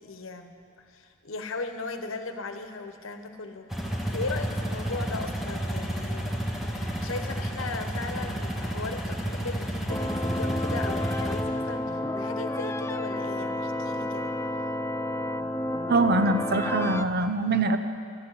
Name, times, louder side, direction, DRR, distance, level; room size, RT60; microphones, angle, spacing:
voice 1, 0.0-14.3, left 3 dB, 85° left, 7 dB, 1.1 m, -37 dB
sound 1, 3.7-11.4, right 1 dB, ahead, 1.4 m, -31 dB
sound 2, 9.9-17.0, left 1 dB, 15° left, 0.4 m, -31 dB
voice 2, 15.9-17.8, right 2 dB, 55° right, 8 dB, 0.8 m, -23 dB
13.0 x 8.4 x 9.6 m, 2.3 s
head